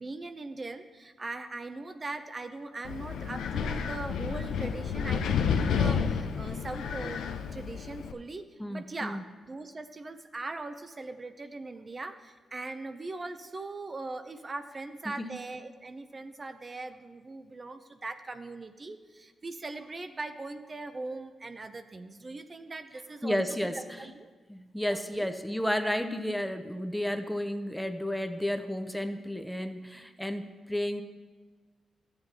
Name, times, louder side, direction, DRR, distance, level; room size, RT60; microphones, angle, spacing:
voice 1, 0.0-7.2 7.5-23.4 24.0-24.3 24.9-25.3, right 3 dB, 35° right, 8 dB, 0.5 m, -40 dB
Wind, 2.8-8.1, left 6 dB, 85° left, 0.5 m, -30 dB
voice 2, 8.6-9.2 15.0-15.3 23.2-24.1 24.5-31.0, equal, 5° left, 8 dB, 0.7 m, -32 dB
13.0 x 8.0 x 2.8 m, 1.4 s
cardioid pair, 65°, 0 cm